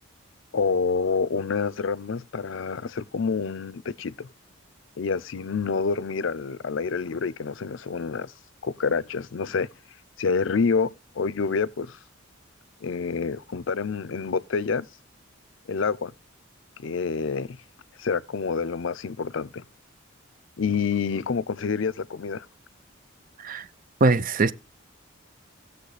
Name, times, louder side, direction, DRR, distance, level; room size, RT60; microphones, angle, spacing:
voice 1, 0.5-4.3 5.0-8.3 8.6-9.7 10.2-12.0 12.8-14.9 15.7-16.1 16.8-17.6 18.0-19.6 20.6-22.5, left 5 dB, 65° left, 0.5 m, -27 dB
voice 2, 24.0-24.5, right 3 dB, 45° right, 0.6 m, -21 dB
18.0 x 6.9 x 3.3 m
head